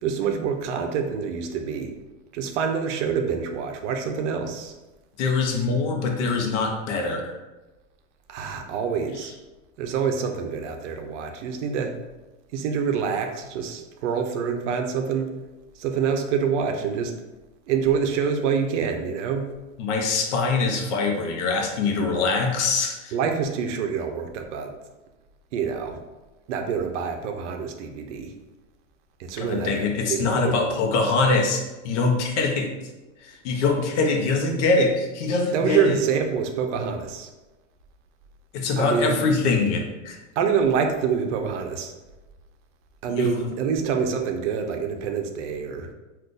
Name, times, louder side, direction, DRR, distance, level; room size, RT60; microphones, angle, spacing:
voice 1, 0.0-1.9 2.3-4.7 8.3-9.3 9.8-11.9 12.5-15.3 15.8-17.1 17.7-19.5 23.1-24.7 25.5-26.0 26.5-28.3 29.2-30.7 35.5-37.3 38.8-39.2 40.4-41.9 43.0-45.9, right 6 dB, 65° right, 5 dB, 0.6 m, -26 dB
voice 2, 5.2-7.4 19.8-23.1 29.4-32.7 33.2-36.0 38.5-40.2 43.1-43.3, left 3 dB, 65° left, 2 dB, 0.7 m, -23 dB
2.5 x 2.4 x 3.7 m, 1.1 s
supercardioid pair, 150°, 39 cm